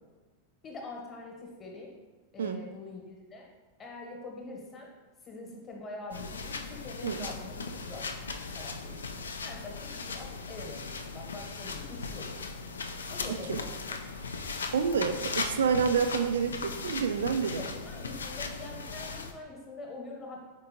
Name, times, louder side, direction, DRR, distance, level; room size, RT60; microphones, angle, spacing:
voice 1, 0.6-1.9 2.3-3.4 3.8-4.9 5.2-8.2 8.5-9.0 9.4-12.3 13.1-14.0 17.5-20.4, left 2 dB, 25° left, 0 dB, 1.0 m, -44 dB
sound 1, 6.1-19.3, left 4 dB, 70° left, 0.3 m, -38 dB
voice 2, 13.3-13.6 14.7-17.6, right 6 dB, 65° right, 9 dB, 0.3 m, -28 dB
4.4 x 4.2 x 2.8 m, 1.3 s
figure-of-eight pair, 90°, 0 cm